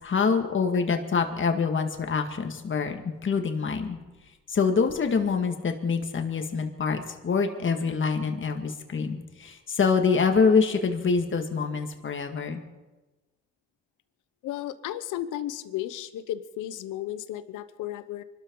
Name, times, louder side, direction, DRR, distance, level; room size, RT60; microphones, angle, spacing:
voice 1, 0.0-4.0 4.5-12.6, left 5 dB, 40° left, 5 dB, 2.0 m, -25 dB
voice 2, 14.4-18.2, left 12 dB, 90° left, 13 dB, 0.9 m, -34 dB
25.0 x 13.0 x 3.9 m, 1.2 s
cardioid pair, 90°, 30 cm